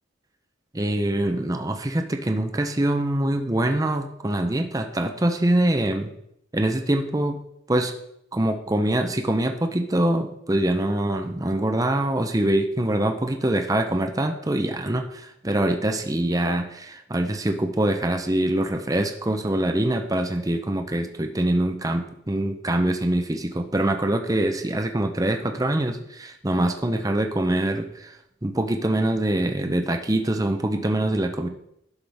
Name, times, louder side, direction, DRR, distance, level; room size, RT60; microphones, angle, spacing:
voice 1, 0.7-6.1 6.5-7.4 7.7-7.9 8.3-28.2 28.4-31.5, right 1 dB, 15° right, 5 dB, 0.6 m, -24 dB
11.5 x 5.7 x 3.5 m, 0.77 s
head